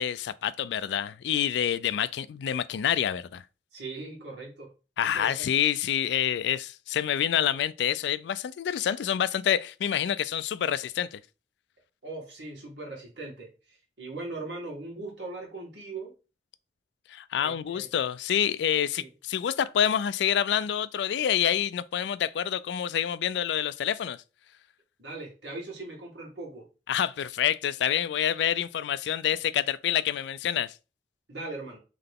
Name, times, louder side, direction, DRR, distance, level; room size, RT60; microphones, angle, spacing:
voice 1, 0.0-3.4 5.0-11.2 17.1-24.2 26.9-30.7, left 9 dB, 75° left, 0.3 m, -27 dB
voice 2, 3.7-4.7 5.0-5.5 12.0-16.1 17.4-17.9 19.0-19.1 25.0-26.7 31.3-31.8, right 2 dB, 85° right, 2.0 m, -40 dB
3.8 x 3.2 x 3.6 m
head